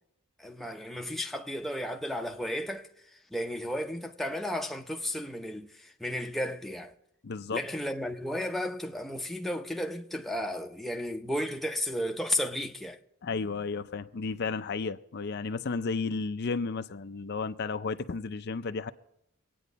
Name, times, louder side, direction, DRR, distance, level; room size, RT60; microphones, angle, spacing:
voice 1, 0.4-2.9 3.3-6.9 7.5-13.0, left 1 dB, ahead, 0.7 m, -33 dB
voice 2, 7.2-7.6 13.2-18.9, left 4 dB, 50° left, 0.5 m, -33 dB
24.5 x 9.4 x 4.1 m
head